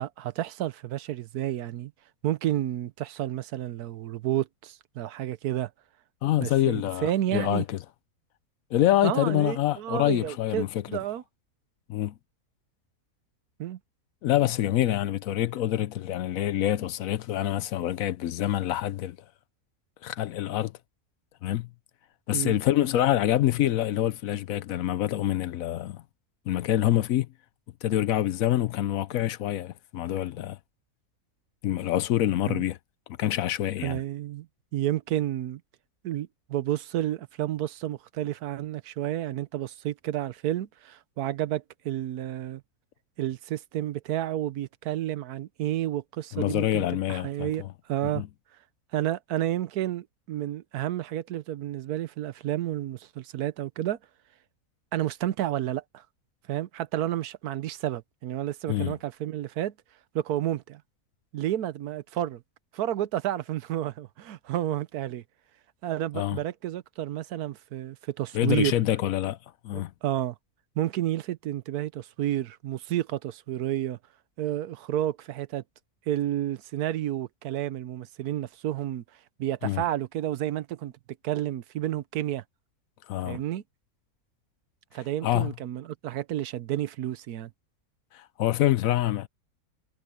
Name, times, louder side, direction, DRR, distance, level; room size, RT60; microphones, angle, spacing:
voice 1, 0.0-1.9 2.2-5.7 6.4-7.6 9.0-11.2 13.6-13.8 22.3-22.6 32.5-32.6 33.8-34.5 34.7-35.6 36.0-42.6 43.2-48.2 48.9-54.0 54.9-56.0 56.5-59.7 60.1-60.8 61.3-62.4 62.7-65.2 65.8-68.8 69.7-70.3 70.8-74.0 74.4-75.6 76.1-79.0 79.4-80.9 81.2-82.4 83.2-83.6 84.9-87.5, right 13 dB, 80° right, 1.2 m, -31 dB
voice 2, 6.2-7.8 8.7-10.8 11.9-12.1 14.2-19.2 20.0-20.7 21.4-21.7 22.3-26.0 26.5-27.3 27.8-30.6 31.6-32.8 33.2-34.0 46.3-47.7 48.0-48.3 58.7-58.9 66.1-66.4 68.3-69.4 69.6-69.9 79.6-79.8 83.1-83.4 85.2-85.5 88.1-89.3, left 13 dB, 70° left, 1.0 m, -26 dB
omnidirectional pair, 1.6 m